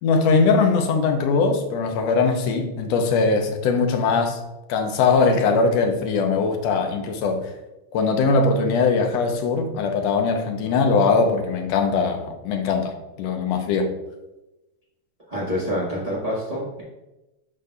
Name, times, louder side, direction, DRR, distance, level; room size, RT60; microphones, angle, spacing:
voice 1, 0.0-4.4 4.7-7.5 7.9-13.9, left 4 dB, 70° left, 4 dB, 1.8 m, -21 dB
voice 2, 15.3-16.8, equal, 70° right, -7 dB, 0.3 m, -27 dB
12.0 x 4.1 x 2.3 m, 0.99 s
omnidirectional pair, 3.4 m